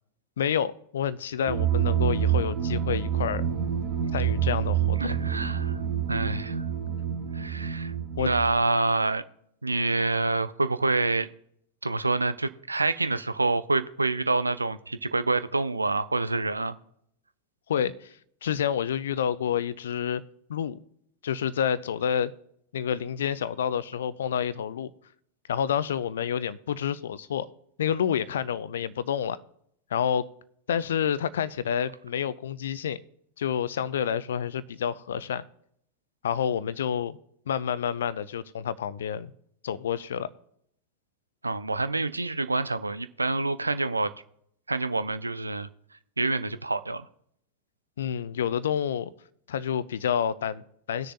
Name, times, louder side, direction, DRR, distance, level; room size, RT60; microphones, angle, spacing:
voice 1, 0.4-3.4 4.1-5.0 8.2-8.3 17.7-18.2 18.4-20.2 20.5-20.8 21.2-22.3 22.7-24.9 25.5-27.5 27.8-29.4 29.9-30.3 30.7-33.0 33.4-35.4 36.2-37.2 37.5-39.3 39.6-40.3 48.0-49.1 49.5-51.1, left 8 dB, 60° left, 18 dB, 0.5 m, -28 dB
sound 1, 1.5-8.6, right 9 dB, 40° right, 1.7 m, -27 dB
voice 2, 5.0-5.8 6.1-6.7 7.3-9.2 9.6-11.3 11.8-16.7 41.4-44.1 44.7-45.7 46.2-47.1, right 3 dB, 80° right, 14 dB, 0.5 m, -27 dB
19.5 x 6.6 x 2.6 m, 0.70 s
figure-of-eight pair, 90°, 0 cm